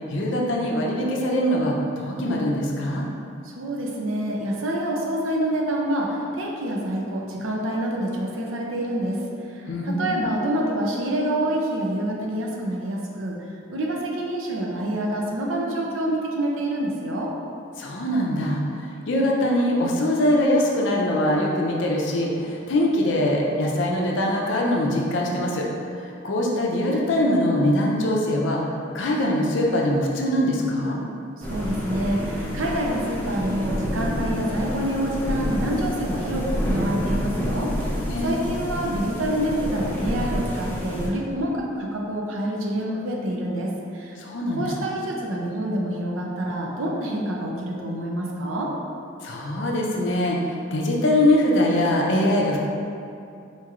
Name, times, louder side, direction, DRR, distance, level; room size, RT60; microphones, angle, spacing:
voice 1, 0.1-3.1 9.7-10.3 17.8-25.6 26.0-28.6 28.9-31.0 38.1-38.5 44.2-44.7 49.2-52.6, left 1 dB, 65° left, -2 dB, 0.5 m, -23 dB
voice 2, 3.5-9.2 9.5-13.4 13.7-17.3 31.4-44.2 44.6-48.7, right 1 dB, 80° right, -1 dB, 0.5 m, -27 dB
sound 1, 31.4-41.1, equal, 10° left, 0.4 m, -28 dB
4.3 x 3.0 x 2.4 m, 2.6 s
head